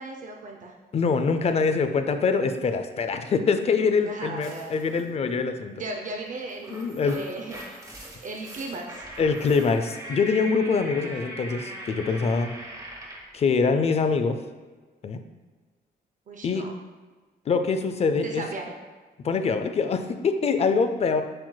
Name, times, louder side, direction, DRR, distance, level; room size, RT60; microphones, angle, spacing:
voice 1, 0.0-0.7 4.0-4.8 5.7-7.9 8.2-9.1 16.3-16.7 18.2-18.7, right 2 dB, 50° right, 2 dB, 0.5 m, -36 dB
voice 2, 0.9-5.8 6.7-7.2 9.2-12.5 13.3-14.4 15.0-15.2 16.4-16.6 17.5-18.4 19.2-21.2, left 5 dB, 40° left, 8 dB, 0.4 m, -24 dB
sound 1, 4.4-5.0 6.4-13.3, right 1 dB, 20° right, 1.0 m, -40 dB
7.5 x 3.0 x 2.2 m, 1.4 s
cardioid pair, 105°, 17 cm